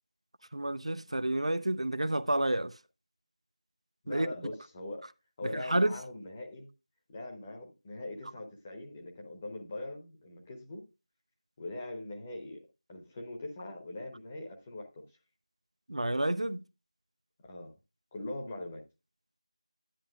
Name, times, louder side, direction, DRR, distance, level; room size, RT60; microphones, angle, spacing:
voice 1, 0.5-2.7 4.1-4.3 5.5-6.0 15.9-16.6, right 1 dB, 65° right, 0.6 m, -29 dB
voice 2, 4.0-5.1 5.4-6.7 7.1-10.8 11.6-12.6 12.9-15.0 17.4-17.7 18.1-18.8, left 2 dB, 15° left, 0.9 m, -42 dB
10.5 x 10.0 x 2.3 m
figure-of-eight pair, 170°, 4 cm